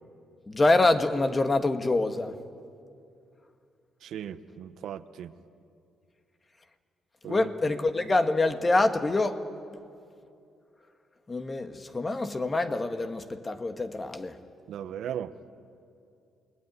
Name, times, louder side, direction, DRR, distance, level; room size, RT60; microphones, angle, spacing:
voice 1, 0.5-2.4 7.3-9.4 11.3-14.3, left 2 dB, 25° left, 8 dB, 1.6 m, -25 dB
voice 2, 4.0-5.3 7.2-7.7 14.7-15.3, right 9 dB, 75° right, 12 dB, 1.0 m, -37 dB
28.5 x 19.5 x 9.6 m, 2.5 s
cardioid pair, 90°, 0 cm